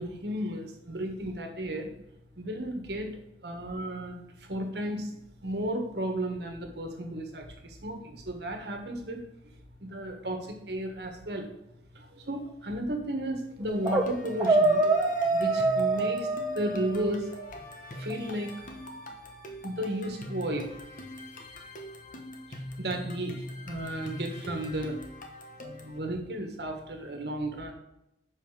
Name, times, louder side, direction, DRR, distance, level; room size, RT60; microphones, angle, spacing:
voice 1, 0.0-1.9 2.4-9.2 9.8-11.5 11.9-14.8 15.3-17.3 17.9-18.5 19.6-20.8 22.5-25.0 25.6-27.7, right 1 dB, 65° right, 4 dB, 1.4 m, -34 dB
sound 1, 13.6-14.1 14.4-17.2, right 2 dB, 15° right, 0.9 m, -25 dB
sound 2, 13.7-26.0, equal, 45° left, 1.0 m, -43 dB
6.9 x 5.4 x 4.9 m, 0.86 s
head